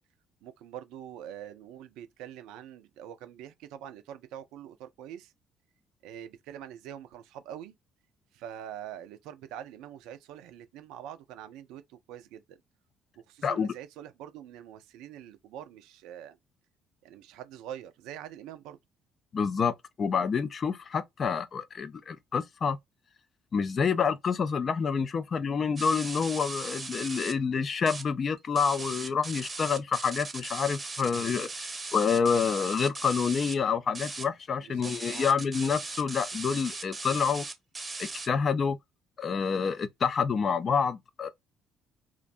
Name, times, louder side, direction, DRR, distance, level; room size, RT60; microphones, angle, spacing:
voice 1, 0.4-5.3 6.0-7.7 8.3-12.6 13.3-16.4 17.0-18.8 34.6-35.3, right 10 dB, 65° right, 0.4 m, -44 dB
voice 2, 19.3-19.7 20.0-22.8 23.5-37.5 38.0-38.8 39.2-41.3, left 6 dB, 45° left, 0.4 m, -28 dB
sound 1, 25.8-27.3 27.7-28.0 28.4-33.5 33.9-34.2 34.8-38.3, right 3 dB, 25° right, 0.7 m, -38 dB
2.5 x 2.1 x 2.5 m
figure-of-eight pair, 50°, 0 cm